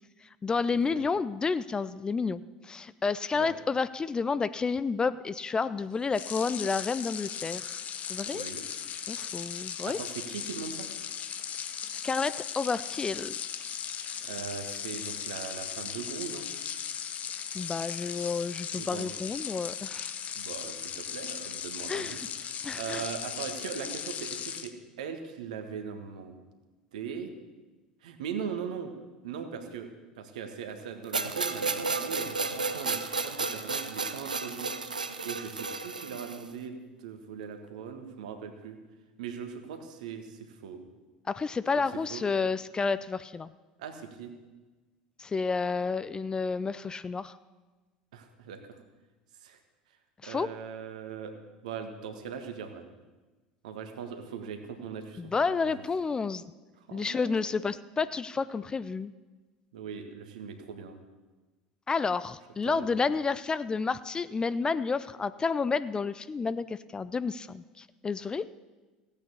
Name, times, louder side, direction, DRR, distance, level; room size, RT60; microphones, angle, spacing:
voice 1, 0.2-7.8 8.1-8.4 9.1-10.0 12.0-13.4 17.5-20.1 21.9-22.2 22.6-23.1 41.3-43.5 45.2-47.4 50.2-50.5 55.2-56.4 56.9-59.1 61.9-68.6, left 4 dB, 20° left, 15 dB, 0.4 m, -30 dB
sound 1, 6.1-24.7, left 8 dB, 35° left, 0.8 m, -37 dB
voice 2, 8.3-8.6 9.8-10.9 14.2-16.5 18.7-19.1 20.3-26.4 26.9-27.3 28.0-28.9 29.2-29.9 30.1-34.7 35.2-38.8 39.2-40.8 42.1-42.2 43.8-44.3 48.1-48.8 49.4-49.6 50.2-51.3 51.6-52.8 53.6-55.7 56.8-57.7 59.7-61.0 62.6-63.0, right 7 dB, 65° right, 6 dB, 1.5 m, -40 dB
sound 2, 31.1-36.5, right 4 dB, 80° right, 0.6 m, -33 dB
16.0 x 8.9 x 7.1 m, 1.2 s
figure-of-eight pair, 70°, 4 cm